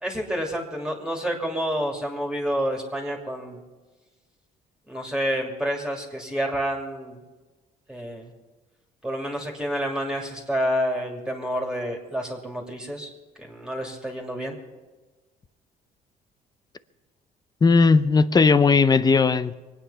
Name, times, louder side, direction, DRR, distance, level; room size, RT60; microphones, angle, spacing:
voice 1, 0.0-3.6 4.9-7.2 7.9-8.3 9.0-13.1 13.4-14.6, equal, 5° right, 0 dB, 2.7 m, -29 dB
voice 2, 17.6-19.5, left 4 dB, 25° left, 14 dB, 0.7 m, -17 dB
23.5 x 9.2 x 5.7 m, 1.3 s
cardioid pair, 110°, 17 cm